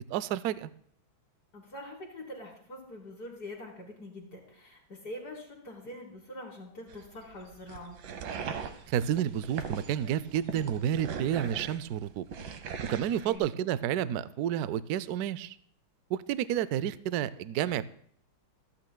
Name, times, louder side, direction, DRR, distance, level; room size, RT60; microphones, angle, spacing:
voice 1, 0.1-0.7 8.9-12.3 12.8-15.6 16.1-17.9, right 10 dB, 90° right, 16 dB, 0.8 m, -30 dB
voice 2, 1.5-8.0 13.2-13.5, left 1 dB, 50° left, 0 dB, 2.2 m, -44 dB
sound 1, 6.9-13.4, right 6 dB, 70° right, 1.6 m, -40 dB
25.0 x 8.9 x 2.2 m, 0.63 s
omnidirectional pair, 2.2 m